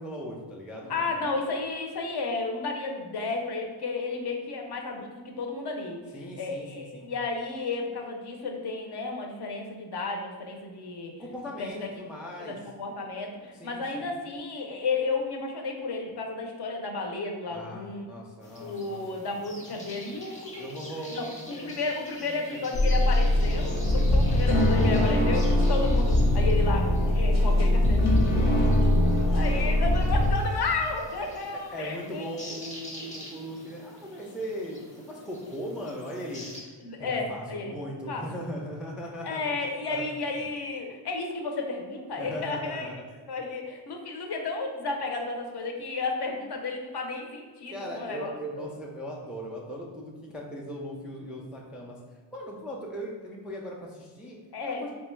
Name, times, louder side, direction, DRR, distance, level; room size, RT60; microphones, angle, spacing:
voice 1, 0.0-1.3 6.1-7.1 11.2-12.6 13.5-14.1 17.5-19.0 20.6-21.7 22.2-22.4 22.7-23.0 29.5-29.7 31.5-36.7 37.0-39.4 39.9-40.0 42.2-42.9 47.7-52.0 52.3-54.4 54.7-54.9, equal, ahead, -2 dB, 0.3 m, -39 dB
voice 2, 0.9-11.1 11.6-11.9 12.4-18.1 18.6-32.3 36.8-37.8 38.1-38.2 39.2-42.9 43.3-48.7 54.5-54.9, left 3 dB, 55° left, 2 dB, 0.7 m, -33 dB
sound 1, 18.4-36.6, left 1 dB, 15° left, 0.7 m, -46 dB
sound 2, 22.7-30.3, left 1 dB, 85° left, 1.0 m, -22 dB
3.4 x 2.2 x 4.3 m, 1.5 s
wide cardioid pair, 135°, 47 cm